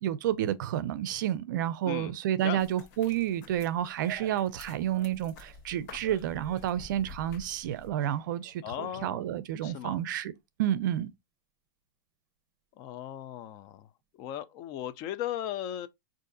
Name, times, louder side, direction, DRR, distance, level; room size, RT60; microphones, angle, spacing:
voice 1, 0.0-10.3 10.6-11.1, right 11 dB, 60° right, 0.4 m, -30 dB
sound 1, 2.6-7.9, left 4 dB, 50° left, 1.1 m, -50 dB
sound 2, 3.9-4.6 4.9-6.7 7.2-9.3 9.6-9.7, right 9 dB, 30° right, 0.8 m, -52 dB
voice 2, 8.6-9.4 9.6-10.0 12.8-13.9 14.2-15.9, left 11 dB, 30° left, 0.4 m, -37 dB
4.6 x 2.5 x 2.6 m
supercardioid pair, 150°, 12 cm